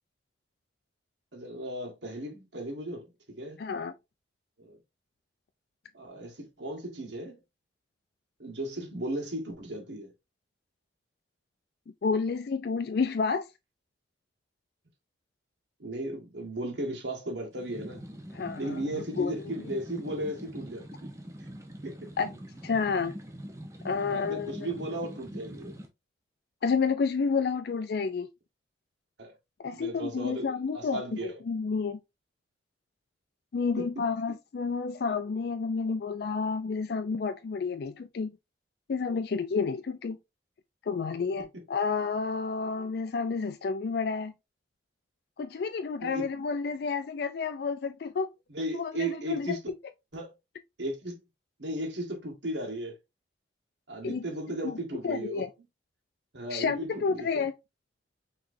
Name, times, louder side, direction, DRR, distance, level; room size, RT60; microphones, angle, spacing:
voice 1, 1.3-3.1 3.4-3.6 4.6-4.8 5.9-7.4 8.4-10.1 15.8-18.0 18.6-20.9 21.8-22.1 24.1-25.7 29.2-29.3 29.7-31.4 33.8-33.9 46.0-46.3 48.5-49.6 50.1-50.3 50.8-51.2 51.6-53.0 53.9-55.5 56.3-57.3, right 1 dB, 75° right, 1.6 m, -36 dB
voice 2, 3.6-3.9 12.0-13.5 18.3-18.8 19.2-19.3 22.2-22.3 22.6-23.1 23.8-24.7 26.6-28.3 29.6-32.0 33.5-38.3 38.9-40.2 40.9-44.3 45.4-48.3 48.7-49.6 54.0-54.2 54.6-54.7 55.0-55.5 56.5-57.5, left 5 dB, 60° left, 0.4 m, -30 dB
sound 1, 17.5-25.9, equal, 15° right, 0.7 m, -43 dB
5.9 x 3.1 x 2.6 m
head